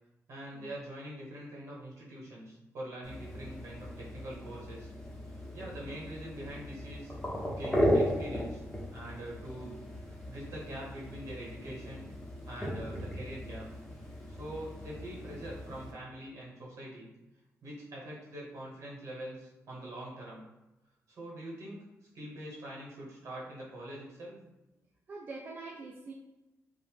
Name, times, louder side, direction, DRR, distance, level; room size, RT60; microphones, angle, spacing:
voice 1, 0.3-4.9 5.5-7.1 7.4-8.6 8.9-9.7 10.2-12.1 12.5-13.7 14.3-17.1 17.6-20.4 21.1-21.8 22.1-24.4, right 1 dB, 65° right, -4 dB, 1.0 m, -44 dB
sound 1, 3.0-15.9, equal, 10° left, 0.6 m, -36 dB
voice 2, 25.1-26.1, right 3 dB, 40° right, -2 dB, 0.3 m, -44 dB
2.7 x 2.0 x 3.3 m, 0.99 s
cardioid pair, 130°, 6 cm